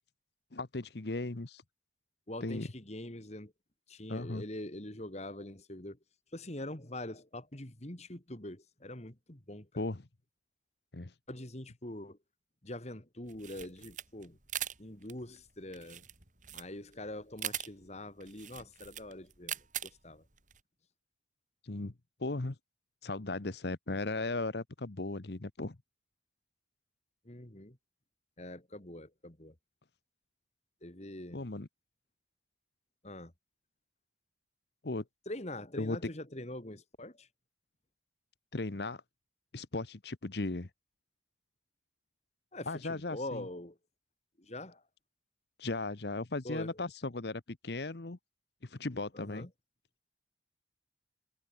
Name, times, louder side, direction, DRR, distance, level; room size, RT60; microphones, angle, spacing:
voice 1, 0.5-1.6 2.4-2.7 4.1-4.4 9.8-10.1 10.9-11.1 21.6-21.9 22.2-22.6 23.0-25.8 31.3-31.7 34.8-35.0 35.8-36.0 38.5-39.0 39.5-40.7 42.7-43.4 45.6-48.2 48.6-49.5, left 2 dB, 60° left, 1.1 m, -37 dB
voice 2, 2.3-3.5 3.9-6.0 6.3-9.7 11.3-12.2 12.6-14.4 14.8-16.0 16.5-19.6 20.0-20.2 27.2-27.8 28.4-29.5 30.8-31.4 33.0-33.3 35.3-37.3 42.5-43.8 44.4-44.8 46.4-46.7 49.1-49.5, left 1 dB, 35° left, 2.6 m, -44 dB
sound 1, 13.3-20.6, right 10 dB, 45° right, 5.9 m, -42 dB
head